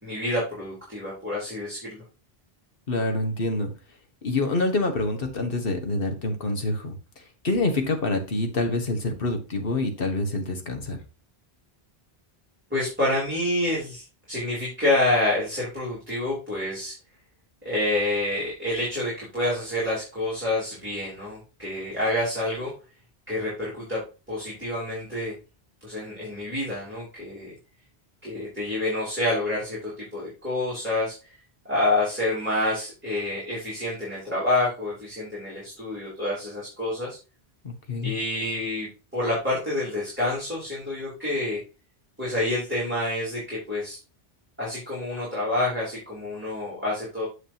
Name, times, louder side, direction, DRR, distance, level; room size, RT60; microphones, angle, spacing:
voice 1, 0.0-2.0 12.7-16.9 17.6-22.7 23.3-24.0 24.3-25.3 25.8-27.5 28.2-31.3 31.7-37.2 38.0-38.9 39.1-41.6 42.2-44.0 44.6-47.3, left 1 dB, 10° right, -7 dB, 3.4 m, -28 dB
voice 2, 2.9-3.7 4.2-7.0 7.4-11.0 37.6-38.1, left 2 dB, 60° left, 5 dB, 1.6 m, -26 dB
7.4 x 6.6 x 2.9 m, 0.32 s
omnidirectional pair, 1.1 m